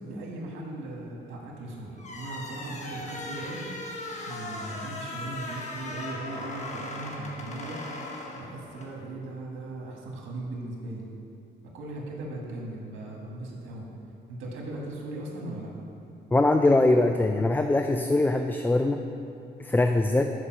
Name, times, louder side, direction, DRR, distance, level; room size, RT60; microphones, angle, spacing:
voice 1, 0.0-3.6 4.3-7.8 8.3-11.1 11.7-13.9 14.3-15.7, right 2 dB, 90° right, -2 dB, 1.6 m, -38 dB
Wooden Door Squeaking Opened Slowly, 2.0-8.9, left 2 dB, 35° left, 1.2 m, -38 dB
voice 2, 16.3-19.0 19.6-20.3, left 2 dB, 10° left, 5 dB, 0.3 m, -22 dB
8.5 x 4.6 x 6.0 m, 2.6 s
cardioid pair, 90°, 20 cm